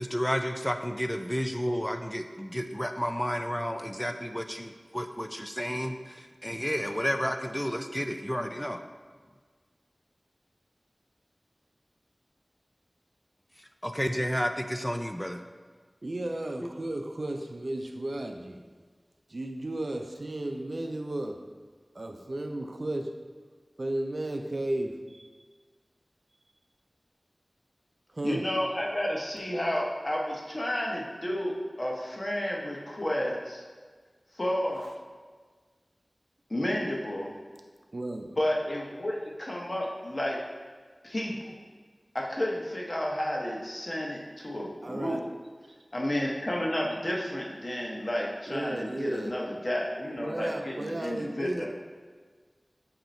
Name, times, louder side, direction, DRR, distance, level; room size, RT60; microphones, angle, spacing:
voice 1, 0.0-8.8 13.8-15.4, equal, 5° left, 6 dB, 0.4 m, -31 dB
voice 2, 16.0-18.6 19.3-21.5 21.9-23.2 23.8-25.3 28.1-28.5 34.8-34.9 37.9-38.4 44.8-45.3 45.6-45.7 48.5-49.4 50.0-51.7, right 1 dB, 60° right, 4 dB, 0.6 m, -34 dB
voice 3, 28.2-33.6 34.3-34.8 36.5-37.3 38.4-40.4 41.0-41.5 42.1-45.2 45.9-51.7, left 1 dB, 40° left, -3 dB, 1.1 m, -31 dB
7.9 x 3.0 x 4.3 m, 1.5 s
wide cardioid pair, 50°, 0 cm